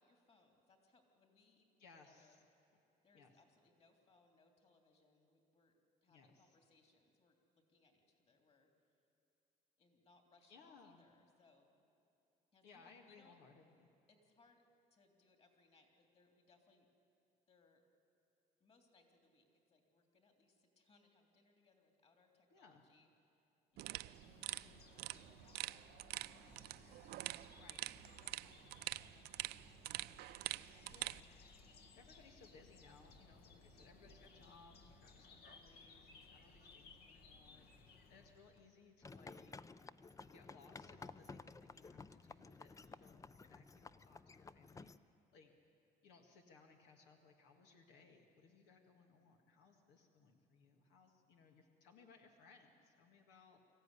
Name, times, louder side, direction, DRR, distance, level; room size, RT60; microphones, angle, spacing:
voice 1, 0.0-1.7 2.0-2.8 3.0-9.0 9.8-11.7 12.5-13.4 14.1-14.6 14.9-16.9 17.5-17.8 18.6-23.5 23.8-27.1 27.9-30.0 30.5-31.3, left 3 dB, 35° left, 4 dB, 3.4 m, -73 dB
voice 2, 1.8-2.4 3.1-3.3 6.1-6.6 10.5-11.0 12.6-13.9 22.5-22.8 27.5-27.8 30.9-31.2 32.0-39.5 40.2-44.9 45.3-45.5 46.0-53.6, left 4 dB, 90° left, 3 dB, 1.9 m, -64 dB
sound 1, 23.8-38.7, left 3 dB, 70° left, 2.0 m, -62 dB
sound 2, 23.8-31.2, right 16 dB, 70° right, 0.4 m, -46 dB
sound 3, 39.0-45.0, left 4 dB, 20° left, 0.5 m, -55 dB
24.0 x 15.0 x 10.0 m, 2.8 s
cardioid pair, 110°, 17 cm